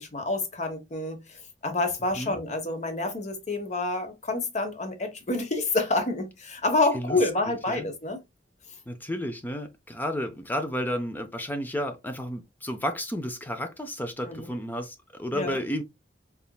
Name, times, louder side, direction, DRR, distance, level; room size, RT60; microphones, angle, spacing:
voice 1, 0.0-8.2 14.3-14.5 15.3-15.6, left 2 dB, 40° left, 1.2 m, -28 dB
voice 2, 8.9-15.8, equal, 10° left, 0.5 m, -32 dB
4.1 x 3.6 x 2.3 m
head